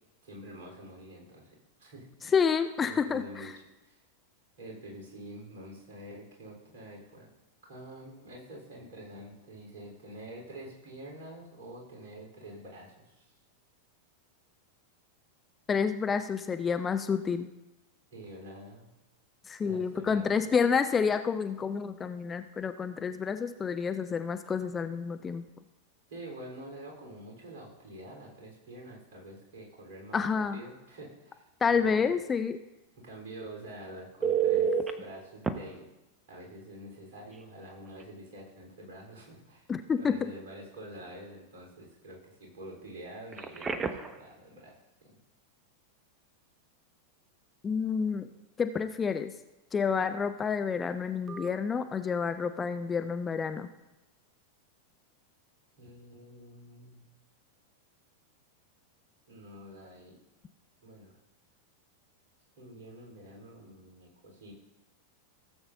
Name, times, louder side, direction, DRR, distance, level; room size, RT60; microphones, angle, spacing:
voice 1, 0.2-1.5 1.8-2.3 2.9-3.5 3.8-4.0 4.6-7.3 7.6-13.3 18.1-18.9 19.6-20.5 26.1-32.1 33.0-35.9 36.3-39.7 40.0-45.2 55.8-57.1 59.3-60.2 60.8-61.1 62.6-64.5, right 1 dB, 55° right, -1 dB, 3.7 m, -47 dB
voice 2, 2.3-3.5 15.7-17.5 19.5-25.4 30.1-30.6 31.6-32.6 39.7-40.3 47.6-48.3 48.6-49.3 49.7-53.7, left 6 dB, 20° left, 9 dB, 0.5 m, -29 dB
Telephone, 34.2-34.9 35.4-35.5 37.3-37.4 37.9-38.0 43.3-44.2 51.3-51.5, right 8 dB, 20° right, 0.8 m, -29 dB
16.5 x 7.9 x 2.7 m, 1.0 s
figure-of-eight pair, 90°, 0 cm